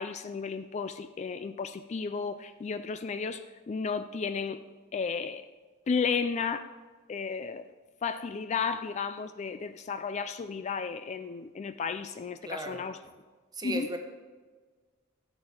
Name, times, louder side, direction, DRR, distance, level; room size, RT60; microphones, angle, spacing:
voice 1, 0.0-3.4 3.7-4.6 4.9-5.4 5.9-6.7 7.1-7.6 8.0-13.0 13.6-13.9, left 5 dB, 35° left, 10 dB, 0.3 m, -33 dB
voice 2, 12.4-12.9 13.5-14.0, right 2 dB, 20° right, 5 dB, 1.0 m, -35 dB
14.0 x 7.8 x 4.3 m, 1.4 s
head